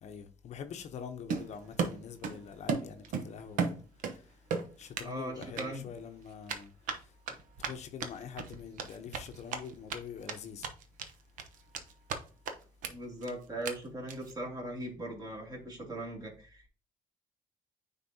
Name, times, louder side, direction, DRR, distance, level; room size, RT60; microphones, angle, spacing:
voice 1, 0.0-4.5 4.8-7.2 7.6-10.7, left 7 dB, 55° left, 0.8 m, -45 dB
Run, 1.3-2.4 2.7-4.2 4.5-5.1 5.4-5.6 6.5-10.0 10.3-10.4 10.6-11.1 11.4-12.2 12.4-12.5 12.8-12.9 13.2-13.3 13.6-13.7 14.1-14.3, right 5 dB, 75° right, 0.9 m, -34 dB
voice 2, 5.0-5.8 12.9-16.7, right 1 dB, 30° right, 2.4 m, -39 dB
9.3 x 3.8 x 2.7 m
cardioid pair, 105°, 14 cm